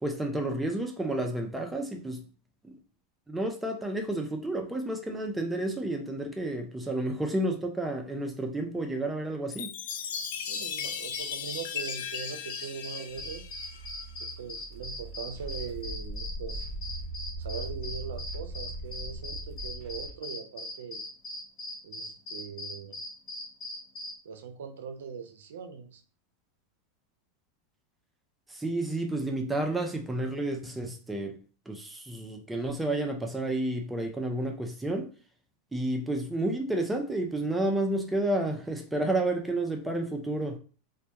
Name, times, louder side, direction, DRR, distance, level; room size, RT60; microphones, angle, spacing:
voice 1, 0.0-2.3 2.6-2.8 3.3-9.7 28.5-31.4 31.7-35.1 35.7-40.6, right 1 dB, 10° right, 0.4 m, -31 dB
Chime, 9.5-14.1, left 8 dB, 70° left, 0.3 m, -37 dB
sound 1, 9.9-24.2, left 2 dB, 45° left, 0.8 m, -40 dB
voice 2, 10.5-13.5 14.2-16.6 17.4-21.0 21.8-22.9 24.2-26.0, right 6 dB, 80° right, 0.5 m, -41 dB
sound 2, 13.1-20.1, right 2 dB, 25° right, 1.0 m, -40 dB
2.2 x 2.1 x 2.8 m
hypercardioid pair, 110°, 0 cm